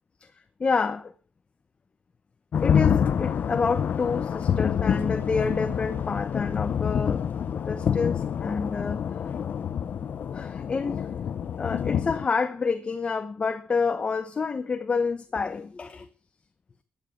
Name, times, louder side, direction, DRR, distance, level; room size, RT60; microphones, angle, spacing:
voice 1, 0.6-1.1 2.6-7.3 7.6-9.1 10.3-11.1 11.6-16.1, left 4 dB, 35° left, 0.9 m, -28 dB
sound 1, 2.5-12.3, left 8 dB, 65° left, 0.8 m, -27 dB
13.0 x 9.3 x 7.9 m
wide cardioid pair, 175°, 3 cm